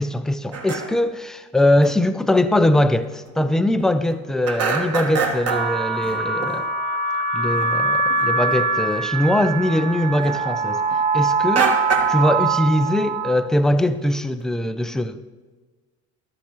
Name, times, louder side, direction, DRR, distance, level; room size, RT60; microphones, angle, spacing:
voice 1, 0.0-6.7 7.3-10.8 11.1-11.7 12.1-15.2, left 1 dB, ahead, 11 dB, 0.4 m, -21 dB
sound 1, 0.5-1.1 1.8-1.9 2.3-2.5 2.9-3.0 3.3-4.2 4.4-6.7 7.4-7.7 8.1-8.7 9.0-11.0 11.5-12.3 12.6-13.0 13.3-13.4 13.7-14.4, right 4 dB, 35° right, 1.4 m, -27 dB
sound 2, 5.5-13.4, right 3 dB, 85° right, 3.5 m, -23 dB
13.0 x 12.5 x 3.1 m, 1.3 s
hypercardioid pair, 65°, 44 cm